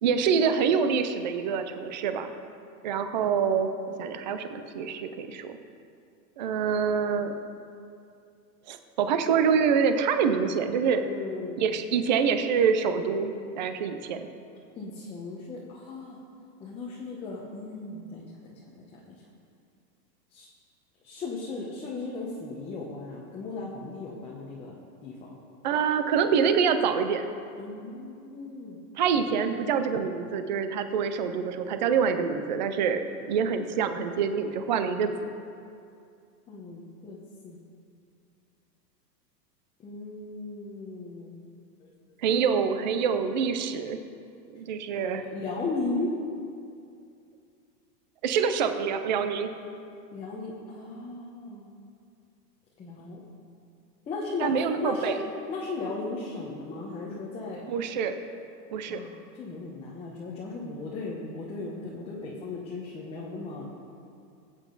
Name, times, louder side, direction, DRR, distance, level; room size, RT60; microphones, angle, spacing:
voice 1, 0.0-2.3 2.8-3.7 4.0-5.6 6.4-7.3 8.7-11.0 11.6-14.2 25.6-27.2 29.0-35.1 42.2-44.0 44.5-45.2 48.2-49.5 54.4-55.1 57.7-58.2 58.7-59.0, right 6 dB, 30° right, 8 dB, 0.4 m, -26 dB
voice 2, 11.0-11.6 14.8-16.2 16.6-19.2 20.3-20.5 21.0-24.8 25.0-25.4 27.6-28.8 36.5-37.6 39.8-41.4 41.8-41.9 45.1-46.1 50.1-51.7 52.8-53.2 54.1-55.2 55.5-57.6 58.9-63.7, left 3 dB, 10° left, -5 dB, 0.9 m, -36 dB
18.5 x 8.4 x 3.9 m, 2.5 s
supercardioid pair, 155°, 50 cm